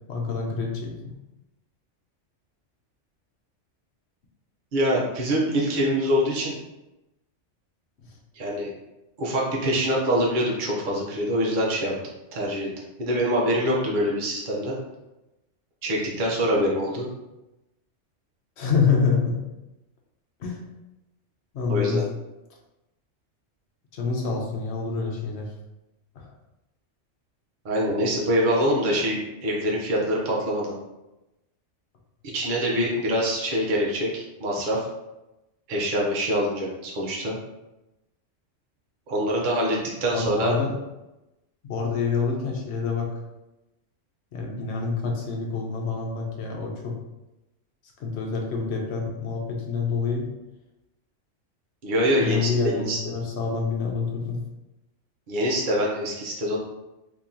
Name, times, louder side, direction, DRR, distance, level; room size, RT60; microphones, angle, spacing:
voice 1, 0.1-1.1 18.6-19.4 20.4-20.6 21.5-22.0 23.9-25.5 26.2-26.3 40.1-40.7 41.6-43.1 44.3-47.0 48.0-50.3 52.2-54.4, left 5 dB, 65° left, 0 dB, 1.0 m, -27 dB
voice 2, 4.7-6.5 8.3-8.7 9.2-12.0 12.3-12.7 13.0-14.8 15.8-17.1 21.7-22.0 27.6-30.8 32.3-34.9 35.7-37.4 39.1-40.5 51.8-53.0 55.3-56.6, equal, 45° right, -3 dB, 0.9 m, -24 dB
2.9 x 2.9 x 3.7 m, 0.97 s
omnidirectional pair, 1.3 m